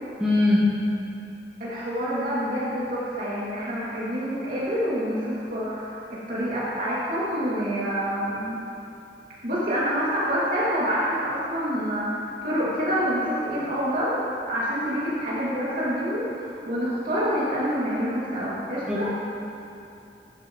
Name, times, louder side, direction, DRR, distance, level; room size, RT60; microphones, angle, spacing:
voice 1, 0.2-0.8 18.9-19.1, left 2 dB, 5° right, -10 dB, 2.0 m, -21 dB
voice 2, 1.6-6.0 6.3-8.6 9.4-19.1, equal, 55° right, -9 dB, 2.5 m, -27 dB
13.5 x 12.5 x 3.2 m, 2.7 s
head